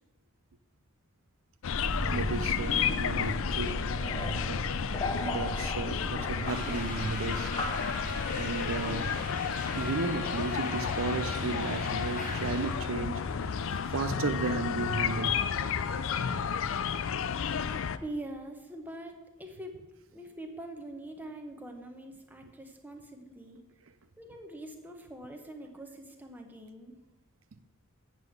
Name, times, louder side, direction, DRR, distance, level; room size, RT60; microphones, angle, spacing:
sound 1, 1.6-18.0, left 7 dB, 60° left, 0.4 m, -32 dB
sound 2, 1.7-11.7, equal, 20° left, 0.8 m, -37 dB
voice 1, 2.1-4.7 5.2-7.5 8.3-9.1 9.7-15.4, right 4 dB, 60° right, 0.5 m, -34 dB
sound 3, 6.4-12.8, left 2 dB, 40° left, 1.4 m, -40 dB
voice 2, 18.0-19.8 20.1-23.6 24.2-27.0, right 1 dB, 10° right, 0.9 m, -43 dB
8.1 x 5.5 x 7.8 m
head